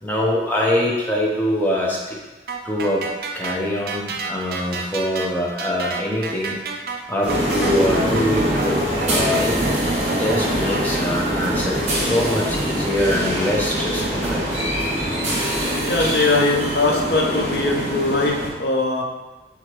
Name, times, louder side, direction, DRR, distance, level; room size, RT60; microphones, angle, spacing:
voice 1, 0.0-2.2 2.6-3.0 3.3-6.6 7.1-8.8 9.1-9.6 10.1-14.4, left 1 dB, 10° left, -4 dB, 0.7 m, -23 dB
sound 1, 2.5-11.0, right 4 dB, 55° right, 0.4 m, -31 dB
sound 2, 7.2-16.2, equal, 5° right, 1.3 m, -41 dB
sound 3, 7.3-18.5, equal, 40° right, 1.1 m, -23 dB
voice 2, 15.8-19.0, left 3 dB, 65° left, 0 dB, 0.7 m, -20 dB
4.7 x 3.6 x 3.0 m, 1.2 s
head